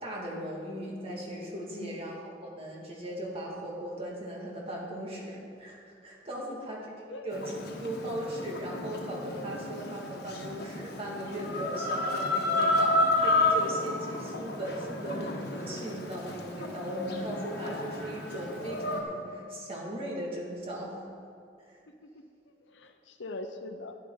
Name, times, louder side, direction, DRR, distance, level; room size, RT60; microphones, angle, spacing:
voice 1, 0.0-6.8 7.1-21.1 21.7-21.8, equal, 30° right, -3 dB, 2.1 m, -38 dB
voice 2, 1.7-2.0 7.0-7.3 22.0-22.2 22.7-24.0, left 2 dB, 85° left, 7 dB, 0.7 m, -42 dB
Chicken rooster, 7.3-19.0, left 2 dB, 60° left, 1.3 m, -31 dB
11.5 x 11.0 x 3.9 m, 2.4 s
head